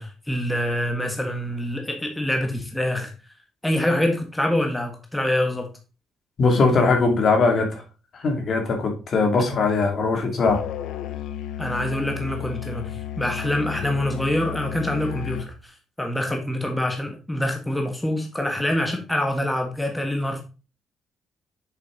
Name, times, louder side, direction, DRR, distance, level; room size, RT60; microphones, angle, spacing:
voice 1, 0.0-3.1 3.6-5.7 11.6-12.9 13.2-15.7 16.0-20.4, left 1 dB, 10° left, 3 dB, 1.4 m, -25 dB
voice 2, 6.4-7.8 8.2-10.6, left 3 dB, 55° left, 3 dB, 2.3 m, -20 dB
Musical instrument, 10.4-15.6, left 11 dB, 85° left, 0.7 m, -33 dB
6.9 x 5.2 x 3.7 m, 0.33 s
cardioid pair, 90°, 0 cm